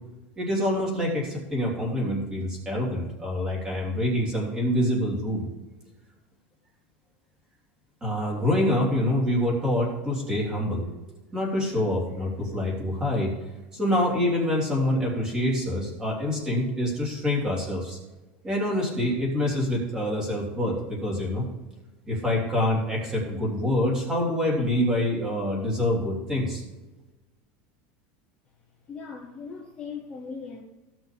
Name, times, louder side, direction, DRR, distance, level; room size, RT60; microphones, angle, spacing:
voice 1, 0.4-5.4 8.0-10.9 11.3-13.4 13.7-18.0 18.4-21.4 22.1-26.6, left 1 dB, 15° right, -3 dB, 2.9 m, -26 dB
voice 2, 28.9-30.6, left 5 dB, 15° left, -2 dB, 1.0 m, -38 dB
15.5 x 6.1 x 3.5 m, 1.1 s
supercardioid pair, 170°, 5 cm